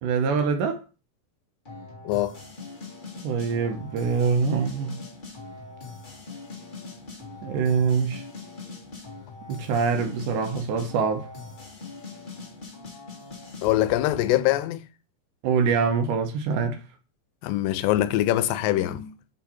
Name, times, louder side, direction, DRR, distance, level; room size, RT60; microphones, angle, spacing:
voice 1, 0.0-0.8 3.2-5.0 7.4-8.2 9.5-11.3 15.4-16.8, right 5 dB, 75° right, 2.3 m, -24 dB
sound 1, 1.7-14.6, left 3 dB, 30° left, 0.9 m, -42 dB
voice 2, 13.6-14.9 17.4-19.1, left 14 dB, 85° left, 2.3 m, -23 dB
6.9 x 3.7 x 4.2 m
omnidirectional pair, 3.9 m